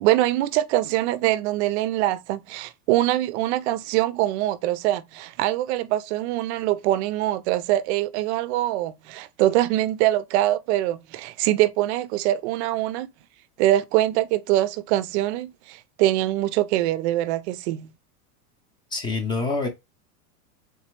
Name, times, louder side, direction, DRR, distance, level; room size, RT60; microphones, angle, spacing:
voice 1, 0.0-13.1 13.6-17.9, right 15 dB, 50° right, 0.4 m, -23 dB
voice 2, 18.9-19.7, left 3 dB, 10° left, 0.4 m, -26 dB
3.6 x 3.0 x 2.9 m
supercardioid pair, 140°, 46 cm